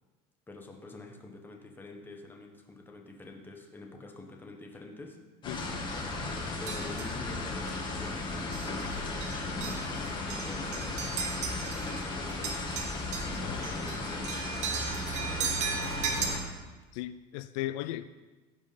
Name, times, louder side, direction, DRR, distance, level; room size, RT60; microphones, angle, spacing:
voice 1, 0.5-5.2 6.6-7.7 8.0-11.2 11.7-12.8 13.4-16.5, left 2 dB, 10° left, 1.4 m, -47 dB
sound 1, 5.4-16.4, left 2 dB, 30° left, 2.1 m, -35 dB
voice 2, 5.5-5.9 13.4-13.6 16.9-18.1, left 14 dB, 85° left, 0.4 m, -37 dB
sound 2, 6.7-7.2 7.7-7.8 8.5-8.9 9.2-12.0 12.3-16.3, right 6 dB, 45° right, 1.7 m, -36 dB
15.5 x 5.3 x 5.1 m
cardioid pair, 145°, 16 cm